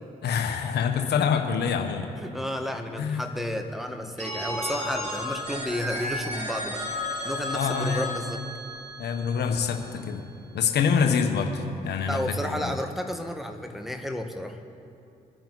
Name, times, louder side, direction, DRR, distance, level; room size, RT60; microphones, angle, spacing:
voice 1, 0.2-2.1 3.0-3.3 7.5-8.1 9.0-10.2 10.5-12.7, left 6 dB, 65° left, 5 dB, 1.2 m, -26 dB
voice 2, 2.2-8.4 12.1-14.6, left 1 dB, ahead, 4 dB, 1.5 m, -32 dB
Telephone, 4.2-10.0, left 1 dB, 35° right, 3.2 m, -33 dB
22.5 x 10.0 x 4.1 m, 2.6 s
hypercardioid pair, 45°, 19 cm